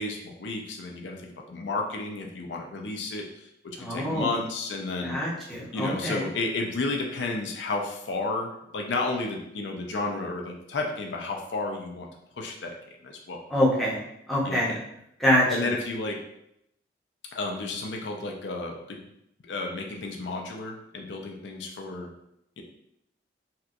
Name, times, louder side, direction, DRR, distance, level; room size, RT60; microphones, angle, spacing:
voice 1, 0.0-5.2 5.7-12.1 12.4-13.4 14.4-14.8 15.5-16.2 17.3-19.0 19.4-22.1 22.6-22.7, left 3 dB, 85° left, 1 dB, 0.5 m, -32 dB
voice 2, 3.8-4.4 5.0-6.3 13.5-14.0 14.3-14.8 15.2-15.4, equal, ahead, -8 dB, 0.8 m, -25 dB
4.2 x 2.2 x 2.5 m, 0.78 s
head